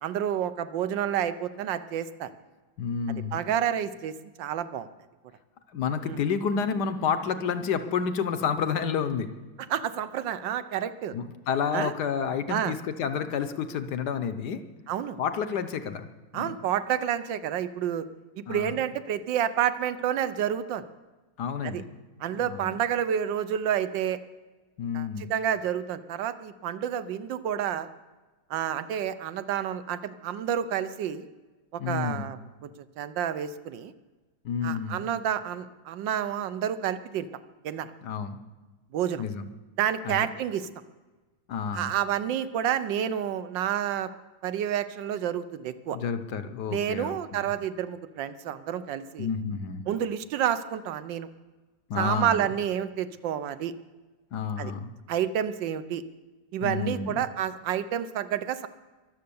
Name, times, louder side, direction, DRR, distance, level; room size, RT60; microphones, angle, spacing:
voice 1, 0.0-2.3 3.3-4.9 6.0-6.2 9.7-11.1 11.7-11.9 12.5-12.8 14.9-15.2 16.3-18.1 18.4-20.8 21.6-21.8 22.2-24.2 24.9-27.9 28.5-31.3 31.7-32.4 32.6-32.7 33.0-33.9 34.6-37.3 37.6-37.9 38.9-39.2 39.8-40.7 41.7-44.1 44.4-46.0 46.7-49.3 49.9-51.3 52.0-53.7 54.6-54.7 55.1-56.0 56.5-58.7, right 9 dB, 70° right, 13 dB, 1.4 m, -29 dB
voice 2, 2.8-3.4 5.7-9.3 11.1-14.6 15.2-16.1 16.3-16.5 18.5-18.8 21.4-21.9 22.4-22.7 24.8-25.3 31.8-32.3 34.4-35.1 38.0-38.4 39.2-39.5 40.0-40.2 41.5-41.9 45.9-47.5 49.2-49.8 51.9-52.4 54.3-54.9 56.6-57.2, left 6 dB, 60° left, 10 dB, 1.3 m, -30 dB
23.0 x 7.7 x 7.0 m, 1.3 s
omnidirectional pair, 2.2 m